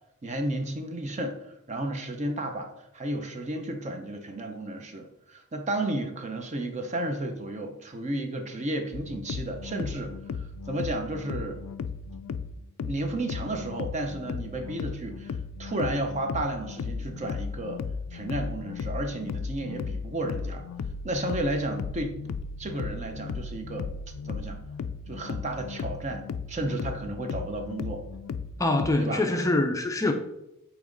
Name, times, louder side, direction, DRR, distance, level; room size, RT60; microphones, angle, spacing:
voice 1, 0.2-10.1 10.7-11.6 12.8-17.8 18.1-20.7 21.0-22.2 22.6-23.9 24.2-24.6 25.1-26.2 26.5-28.0 29.0-29.2, right 1 dB, 30° right, 5 dB, 0.6 m, -32 dB
sound 1, 8.9-28.9, left 5 dB, 80° left, 0.4 m, -36 dB
voice 2, 28.6-30.1, left 2 dB, 15° left, 4 dB, 0.4 m, -24 dB
8.4 x 3.1 x 3.8 m, 0.86 s
head